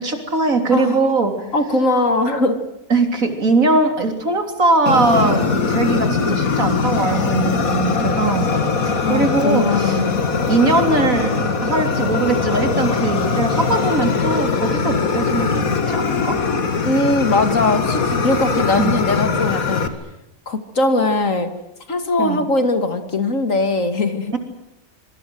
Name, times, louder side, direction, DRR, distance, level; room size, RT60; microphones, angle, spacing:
voice 1, 0.0-1.4 2.9-5.4 5.7-10.0 10.5-16.4 18.8-18.9 22.2-22.4 24.3-24.4, right 3 dB, 75° right, 6 dB, 4.0 m, -20 dB
voice 2, 1.5-2.6 9.0-10.2 16.8-19.8 20.5-21.5 21.9-24.3, left 2 dB, 65° left, 9 dB, 2.8 m, -20 dB
Fire, 4.9-19.9, left 4 dB, 90° left, 2.4 m, -21 dB
26.5 x 23.0 x 7.9 m, 0.86 s
omnidirectional pair, 1.4 m